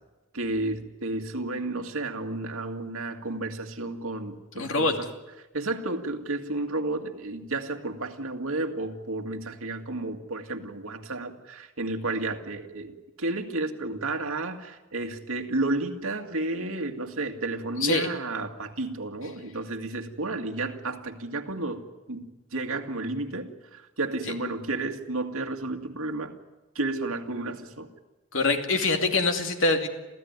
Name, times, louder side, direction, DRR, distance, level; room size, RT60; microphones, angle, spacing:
voice 1, 0.3-5.1 5.5-26.4 26.8-27.9, right 2 dB, 85° right, 2.2 m, -32 dB
voice 2, 4.5-5.0 17.8-18.1 28.3-29.9, left 3 dB, 70° left, 2.7 m, -24 dB
27.5 x 15.5 x 9.6 m
head